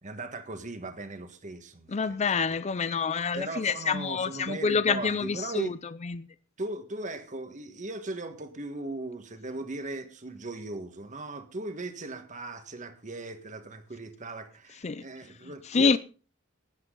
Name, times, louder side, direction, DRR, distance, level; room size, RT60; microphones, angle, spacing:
voice 1, 0.0-2.2 3.3-5.7 6.6-16.0, right 2 dB, 35° right, 1.6 m, -38 dB
voice 2, 1.9-5.8 6.0-6.3 14.8-15.0 15.7-16.0, left 5 dB, 35° left, 0.5 m, -27 dB
16.5 x 10.5 x 3.9 m
head